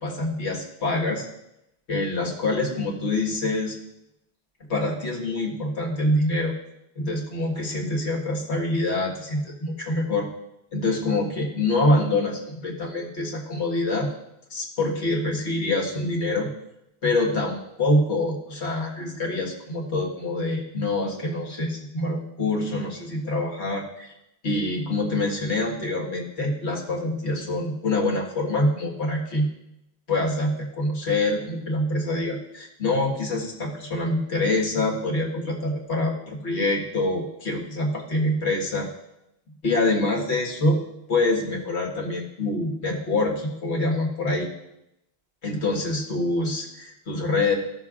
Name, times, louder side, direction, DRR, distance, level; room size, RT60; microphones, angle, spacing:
voice 1, 0.0-1.2 1.9-3.8 4.7-6.5 7.0-10.3 10.7-14.1 14.5-16.5 17.0-24.1 24.4-29.5 30.1-38.9 39.6-40.8 41.1-44.5 45.4-47.6, left 2 dB, 80° left, -2 dB, 1.9 m, -25 dB
14.5 x 6.6 x 2.4 m, 0.84 s
omnidirectional pair, 1.1 m